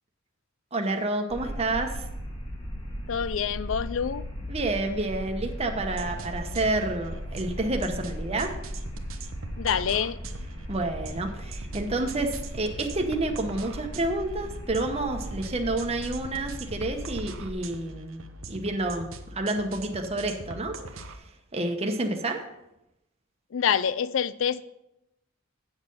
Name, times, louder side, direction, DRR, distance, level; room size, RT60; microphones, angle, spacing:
voice 1, 0.7-2.0 4.5-8.5 10.7-19.1 19.3-20.8 21.5-22.4, right 2 dB, 30° right, 4 dB, 1.0 m, -29 dB
sound 1, 1.3-17.5, equal, 25° left, 1.4 m, -37 dB
voice 2, 3.1-4.3 9.6-10.2 23.5-24.6, left 7 dB, 65° left, 17 dB, 0.4 m, -26 dB
sound 2, 5.9-21.2, right 2 dB, 70° right, 0.9 m, -42 dB
8.8 x 6.5 x 5.5 m, 0.88 s
head